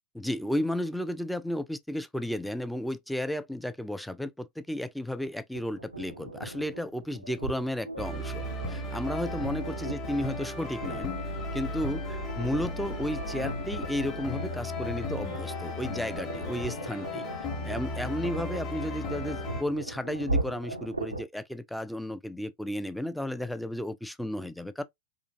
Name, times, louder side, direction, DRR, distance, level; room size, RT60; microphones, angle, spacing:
voice 1, 0.1-11.1 11.5-17.3 17.6-24.8, left 1 dB, ahead, 0.3 m, -33 dB
sound 1, 5.5-21.2, right 2 dB, 85° right, 0.4 m, -38 dB
sound 2, 8.0-19.6, left 2 dB, 30° left, 1.0 m, -36 dB
3.7 x 2.4 x 2.5 m
figure-of-eight pair, 90°, 0 cm